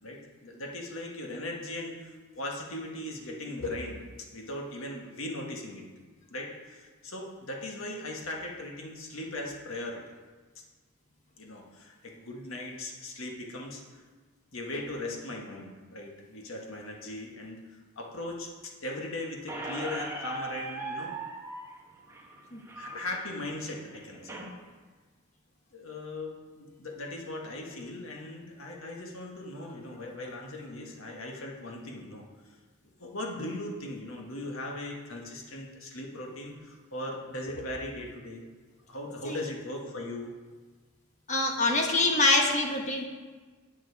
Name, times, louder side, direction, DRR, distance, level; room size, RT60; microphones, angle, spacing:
voice 1, 0.0-5.8 6.3-10.0 11.4-13.8 14.5-17.6 17.9-21.1 22.8-24.4 25.7-32.3 33.0-38.5 38.9-40.4, left 1 dB, 80° left, 0 dB, 1.6 m, -39 dB
Squeak, 19.5-24.5, right 2 dB, 15° right, 1.3 m, -39 dB
voice 2, 41.3-43.1, left 2 dB, 35° left, 2 dB, 1.2 m, -25 dB
9.6 x 7.6 x 4.7 m, 1.4 s
head